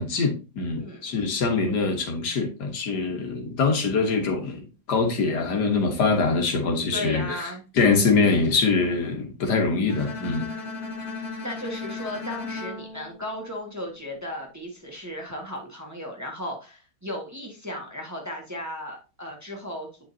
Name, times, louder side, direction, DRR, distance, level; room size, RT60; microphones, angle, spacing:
voice 1, 0.0-7.2 7.8-10.5, left 4 dB, 80° left, 2.0 m, -24 dB
voice 2, 0.6-1.0 6.9-7.6 11.2-19.9, left 1 dB, 10° right, 1.5 m, -35 dB
Bowed string instrument, 9.9-14.0, left 4 dB, 45° left, 1.8 m, -36 dB
8.8 x 5.2 x 2.7 m
omnidirectional pair, 1.7 m